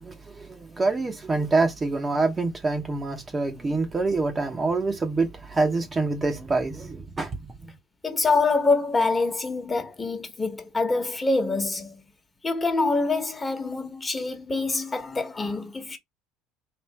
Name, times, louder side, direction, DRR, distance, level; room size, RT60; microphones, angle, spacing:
voice 1, 0.0-7.5, right 3 dB, 25° right, 0.8 m, -26 dB
voice 2, 8.0-12.0 12.4-16.0, left 3 dB, 20° left, 1.2 m, -25 dB
3.4 x 2.6 x 4.2 m
supercardioid pair, 90°, 0 cm